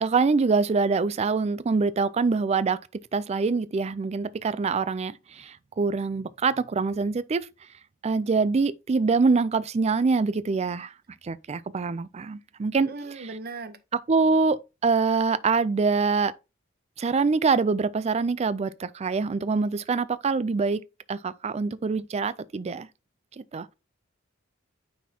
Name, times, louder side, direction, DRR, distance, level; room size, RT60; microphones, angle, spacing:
voice 1, 0.0-7.5 8.0-10.9 11.2-13.4 13.9-16.3 17.0-20.8 21.1-22.9 23.4-23.7, right 4 dB, 30° right, 0.4 m, -25 dB
voice 2, 12.9-13.8, right 3 dB, 50° right, 0.8 m, -37 dB
9.1 x 4.3 x 2.8 m
head